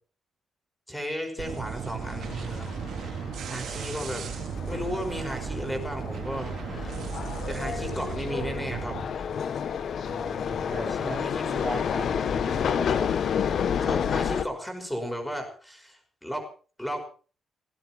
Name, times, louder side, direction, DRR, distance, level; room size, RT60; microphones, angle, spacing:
voice 1, 0.9-2.7 3.5-4.2 4.7-7.0 7.5-9.2 11.0-11.7 13.8-16.5 16.8-17.0, equal, 5° left, 4 dB, 5.6 m, -35 dB
sound 1, 1.4-9.0, right 7 dB, 55° right, 3.8 m, -35 dB
sound 2, 1.9-14.4, left 7 dB, 50° left, 1.4 m, -30 dB
voice 2, 10.0-13.1, right 2 dB, 20° right, 0 dB, 3.1 m, -38 dB
17.5 x 17.5 x 4.4 m, 0.40 s
cardioid pair, 175°, 0 cm